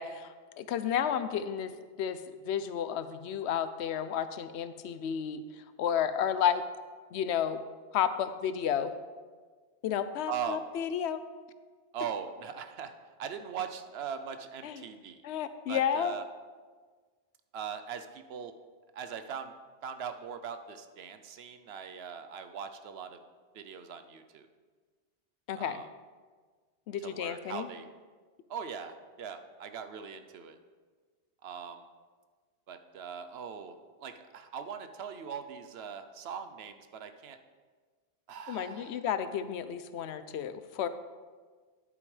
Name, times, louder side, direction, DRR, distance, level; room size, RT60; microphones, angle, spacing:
voice 1, 0.0-1.7 2.0-6.6 7.1-7.6 7.9-8.9 9.8-11.2 14.6-14.8 15.2-16.1 25.5-25.8 26.9-27.7 38.5-40.9, left 8 dB, 80° left, 12 dB, 0.9 m, -32 dB
voice 2, 10.3-10.6 11.9-12.9 13.2-15.2 15.7-16.3 17.5-18.5 18.9-19.5 19.8-23.2 23.5-24.5 25.5-25.9 27.0-27.8 28.5-30.6 31.4-31.9 32.7-37.4 38.3-39.0, right 7 dB, 70° right, 8 dB, 0.9 m, -40 dB
10.5 x 8.6 x 3.3 m, 1.5 s
omnidirectional pair, 1.1 m